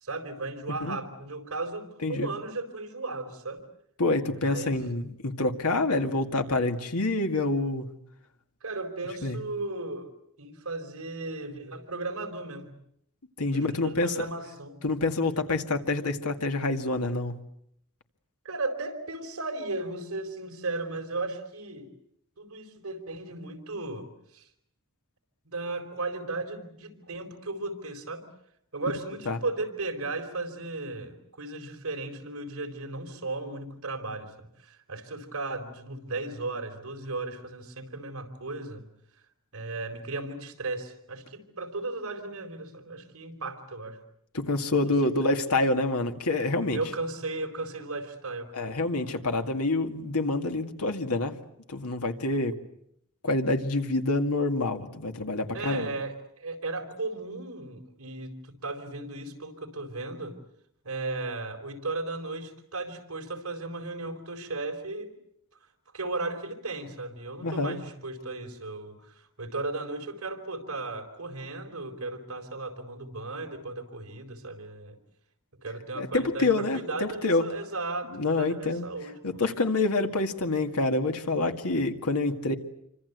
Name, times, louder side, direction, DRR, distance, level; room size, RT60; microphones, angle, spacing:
voice 1, 0.0-3.6 4.4-4.8 8.6-10.1 10.4-12.7 13.5-14.8 18.4-21.9 22.4-24.1 24.3-24.5 25.4-28.2 28.7-38.9 39.5-44.0 44.8-45.0 46.7-48.8 55.5-60.4 60.8-65.1 65.9-75.0 75.6-79.2, right 2 dB, 65° right, 4 dB, 4.2 m, -35 dB
voice 2, 4.0-7.9 9.2-9.4 13.4-14.3 14.8-17.3 29.3-29.4 44.3-46.8 48.5-51.4 51.7-52.6 53.2-55.9 67.4-67.8 76.0-77.4 78.1-78.9 79.2-82.6, left 2 dB, 85° left, 6 dB, 2.1 m, -27 dB
27.5 x 25.5 x 8.1 m, 0.75 s
head